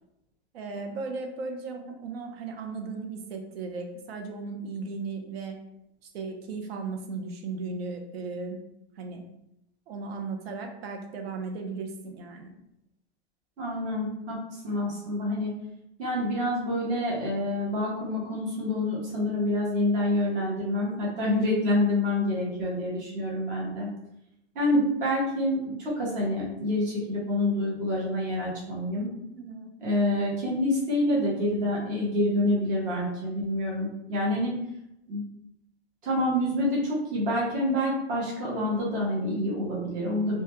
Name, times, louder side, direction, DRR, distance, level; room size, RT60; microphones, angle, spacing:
voice 1, 0.5-5.6 6.1-8.6 9.0-9.2 9.9-12.5 29.3-29.7, right 4 dB, 65° right, 4 dB, 0.6 m, -36 dB
voice 2, 13.6-15.5 16.0-23.9 24.5-29.1 29.8-34.5 35.1-35.2 36.0-40.4, left 1 dB, 25° right, -5 dB, 0.7 m, -27 dB
2.2 x 2.1 x 2.8 m, 0.83 s
hypercardioid pair, 150°, 33 cm